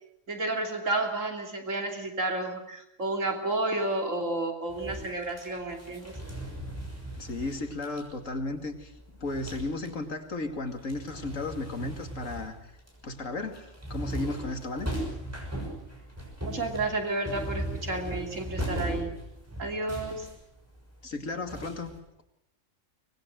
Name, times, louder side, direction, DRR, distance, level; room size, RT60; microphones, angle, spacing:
voice 1, 0.3-6.1 16.5-19.1 19.6-20.3, right 2 dB, 75° right, 3 dB, 3.4 m, -31 dB
sound 1, 4.7-10.1 10.4-22.0, right 1 dB, 10° right, 6.5 m, -38 dB
voice 2, 7.2-8.9 9.2-12.5 13.0-14.9 21.0-21.9, left 3 dB, 85° left, 6 dB, 2.7 m, -34 dB
24.0 x 20.5 x 7.8 m, 0.80 s
omnidirectional pair, 1.3 m